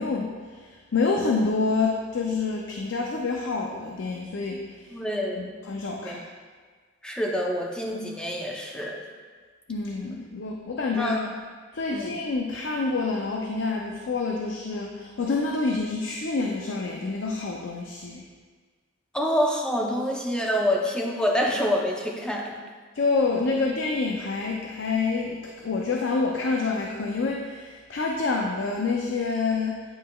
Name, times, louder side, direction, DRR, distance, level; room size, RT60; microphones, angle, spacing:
voice 1, 0.0-4.6 5.4-6.2 9.7-11.2 11.7-18.2 22.9-29.8, left 4 dB, 65° left, 1 dB, 0.5 m, -27 dB
voice 2, 4.9-5.5 6.0-6.2 7.0-9.0 11.0-11.3 11.9-12.1 19.1-22.5, equal, 5° left, -1 dB, 0.6 m, -27 dB
8.7 x 5.2 x 2.3 m, 1.5 s
head